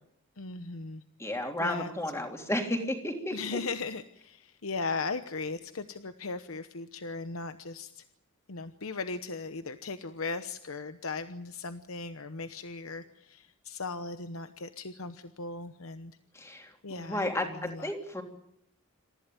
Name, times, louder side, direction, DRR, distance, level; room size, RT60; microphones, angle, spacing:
voice 1, 0.4-1.0 1.6-1.9 3.3-8.0 8.5-16.2 16.8-17.9, left 4 dB, 75° left, 10 dB, 1.0 m, -38 dB
voice 2, 1.2-3.6 16.3-18.2, left 1 dB, 15° left, 3 dB, 3.1 m, -33 dB
27.5 x 15.0 x 9.2 m, 0.74 s
head